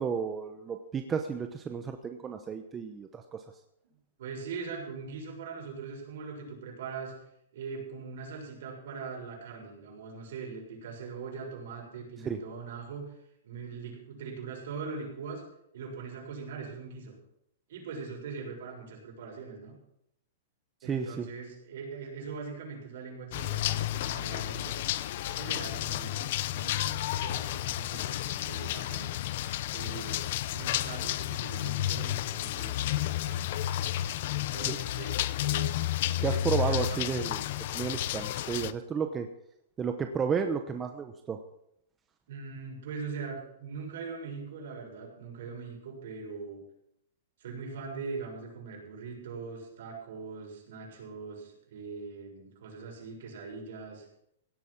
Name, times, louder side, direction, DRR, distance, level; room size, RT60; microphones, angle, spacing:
voice 1, 0.0-3.4 12.2-12.4 20.8-21.3 34.6-34.8 36.2-37.4 37.7-39.3 39.8-41.4, right 6 dB, 15° right, 6 dB, 0.9 m, -32 dB
voice 2, 4.2-7.1 7.5-13.1 13.4-15.4 15.7-17.2 17.7-19.7 20.8-24.8 25.4-29.1 29.7-30.2 30.5-33.4 34.3-35.8 36.1-37.0 42.3-46.6 47.4-54.1, right 5 dB, 60° right, 0 dB, 6.9 m, -41 dB
sound 1, 23.3-38.7, left 13 dB, 50° left, 0.7 m, -31 dB
17.0 x 8.4 x 7.3 m, 0.75 s
hypercardioid pair, 160°, 0 cm